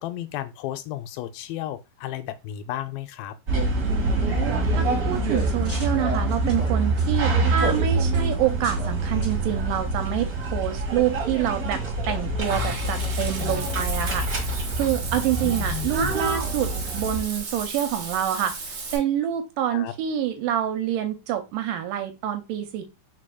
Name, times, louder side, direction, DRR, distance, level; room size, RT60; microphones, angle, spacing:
voice 1, 0.0-3.4 7.4-7.7 12.5-12.8 13.4-13.8 15.4-16.2 19.7-19.9, left 12 dB, 85° left, 2.3 m, -34 dB
sound 1, 3.5-17.2, right 2 dB, 40° right, 1.3 m, -25 dB
voice 2, 3.9-18.5 18.9-22.8, right 10 dB, 80° right, 2.0 m, -27 dB
sound 2, 4.8-8.9 9.2-9.4 10.1-10.3 10.8-10.9, left 1 dB, 20° left, 1.8 m, -45 dB
Water / Bathtub (filling or washing), 12.4-19.0, right 3 dB, 60° right, 1.3 m, -35 dB
4.8 x 4.2 x 2.2 m
omnidirectional pair, 4.1 m